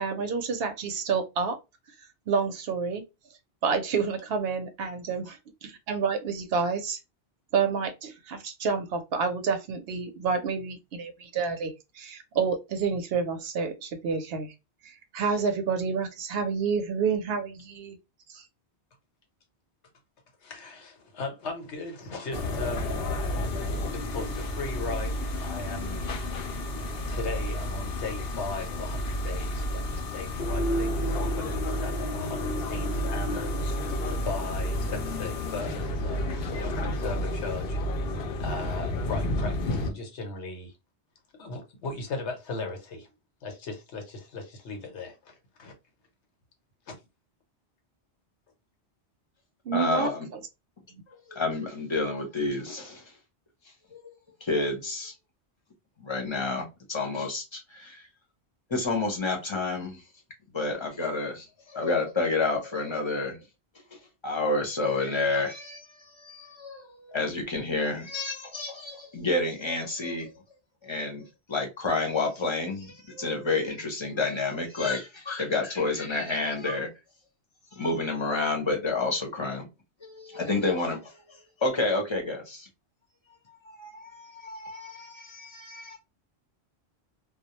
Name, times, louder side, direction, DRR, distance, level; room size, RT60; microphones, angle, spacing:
voice 1, 0.0-1.6 2.3-3.0 3.6-7.0 7.5-14.5 14.8-18.0 18.3-18.4 49.7-50.4, right 5 dB, 65° right, 0.7 m, -29 dB
voice 2, 20.4-23.0 23.9-26.8 27.1-33.5 34.2-38.0 38.4-40.7 41.4-43.1 43.4-45.7 46.9-47.0, left 3 dB, 85° left, 1.1 m, -38 dB
sound 1, 22.3-39.9, left 1 dB, 65° left, 0.8 m, -30 dB
voice 3, 49.7-50.3 51.3-53.1 53.9-54.0 54.4-55.1 56.0-58.0 58.7-60.0 60.5-63.4 64.2-70.3 70.8-76.9 77.7-79.7 80.0-82.7 83.7-86.0, left 3 dB, 30° left, 0.7 m, -29 dB
2.3 x 2.0 x 2.8 m
omnidirectional pair, 1.1 m